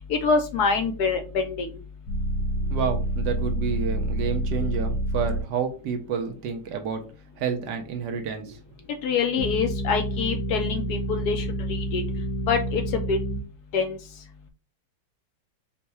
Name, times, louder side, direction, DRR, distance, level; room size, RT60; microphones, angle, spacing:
voice 1, 0.1-1.7 9.0-12.0 12.5-12.8 13.1-13.2 13.7-14.0, left 5 dB, 70° left, 6 dB, 1.0 m, -25 dB
sound 1, 2.1-5.4 9.4-13.4, equal, 90° left, 1.5 m, -28 dB
voice 2, 2.6-7.0 7.4-8.6, right 6 dB, 70° right, 5 dB, 1.3 m, -29 dB
4.5 x 2.2 x 4.1 m, 0.33 s
omnidirectional pair, 2.0 m